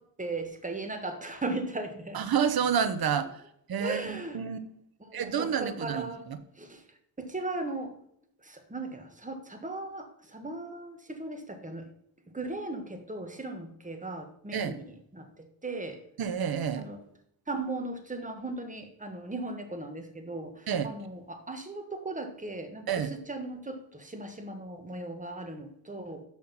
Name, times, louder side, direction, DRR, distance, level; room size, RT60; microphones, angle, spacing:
voice 1, 0.2-2.2 3.8-4.4 5.0-6.3 6.6-6.8 7.2-7.9 8.4-11.9 12.3-15.3 15.6-16.0 16.8-17.0 17.5-26.2, right 2 dB, 15° right, 5 dB, 1.5 m, -37 dB
voice 2, 2.1-3.4 3.7-4.6 5.1-6.4 14.5-14.8 16.2-16.9 20.7-20.9 22.9-23.1, right 7 dB, 50° right, 11 dB, 0.9 m, -29 dB
6.3 x 5.7 x 5.9 m, 0.70 s
cardioid pair, 80°, 46 cm